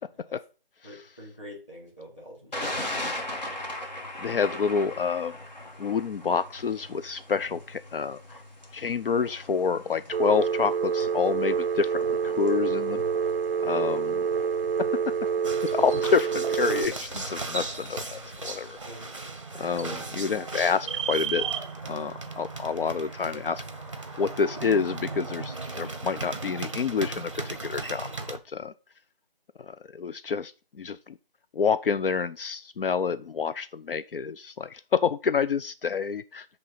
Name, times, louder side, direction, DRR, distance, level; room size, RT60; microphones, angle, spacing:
voice 1, 0.8-4.1 13.6-13.9 14.2-14.5 18.8-19.1 19.8-20.1, equal, 15° left, 2.4 m, -46 dB
Thunder, 2.5-18.8, left 1 dB, 50° left, 1.6 m, -40 dB
voice 2, 4.2-5.3 5.8-8.4 8.7-13.0 13.6-14.2 14.8-14.9 15.7-18.8 19.6-21.4 21.8-23.6 24.2-28.7 29.6-31.2 31.5-36.5, left 6 dB, 70° left, 0.4 m, -28 dB
Telephone, 10.1-16.9, right 6 dB, 85° right, 0.5 m, -27 dB
sound 1, 15.4-28.4, right 4 dB, 35° right, 0.7 m, -36 dB
8.9 x 3.4 x 5.5 m
figure-of-eight pair, 175°, 29 cm